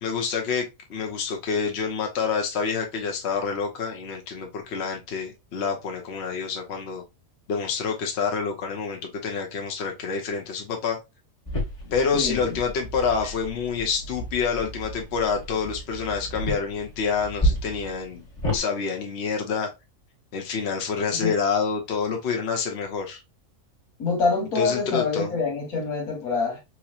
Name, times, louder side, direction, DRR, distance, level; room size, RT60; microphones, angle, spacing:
voice 1, 0.0-7.0 7.5-11.0 11.9-18.2 18.5-19.7 20.3-23.2 24.5-25.3, left 5 dB, 50° left, 1.1 m, -27 dB
sound 1, 11.5-18.6, equal, 25° left, 1.4 m, -31 dB
voice 2, 12.1-12.6 21.1-21.4 24.0-26.6, left 4 dB, 85° left, 1.9 m, -26 dB
4.6 x 3.0 x 2.4 m
omnidirectional pair, 1.5 m